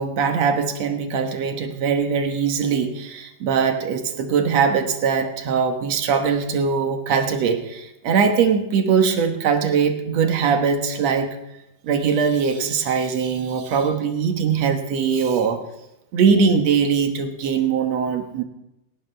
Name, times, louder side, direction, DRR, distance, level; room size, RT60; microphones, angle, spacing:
voice 1, 0.0-11.4 11.8-15.6 16.1-18.4, right 6 dB, 65° right, 6 dB, 2.3 m, -21 dB
18.0 x 17.5 x 3.4 m, 0.88 s
omnidirectional pair, 3.5 m